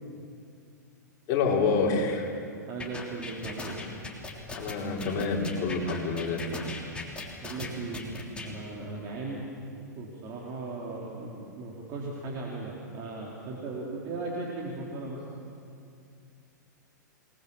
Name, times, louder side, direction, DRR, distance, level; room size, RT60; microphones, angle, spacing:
voice 1, 1.3-2.3 4.6-6.8, left 4 dB, 40° left, -2 dB, 4.3 m, -28 dB
voice 2, 2.7-3.8 7.4-8.1 8.4-9.4 9.9-15.4, right 3 dB, 40° right, -3 dB, 3.9 m, -37 dB
sound 1, 2.8-8.5, left 3 dB, 10° left, 3.5 m, -38 dB
27.0 x 20.0 x 7.2 m, 2.4 s
figure-of-eight pair, 105°, 10 cm